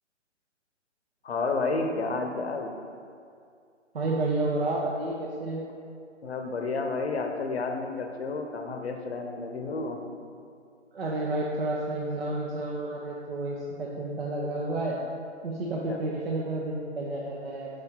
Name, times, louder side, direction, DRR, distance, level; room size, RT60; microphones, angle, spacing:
voice 1, 1.2-2.7 6.2-10.0 15.9-16.0, left 3 dB, 60° left, 4 dB, 0.8 m, -31 dB
voice 2, 3.9-5.6 10.9-15.0 15.4-17.7, right 2 dB, 55° right, -4 dB, 0.8 m, -30 dB
5.0 x 4.1 x 4.5 m, 2.3 s
figure-of-eight pair, 140°, 37 cm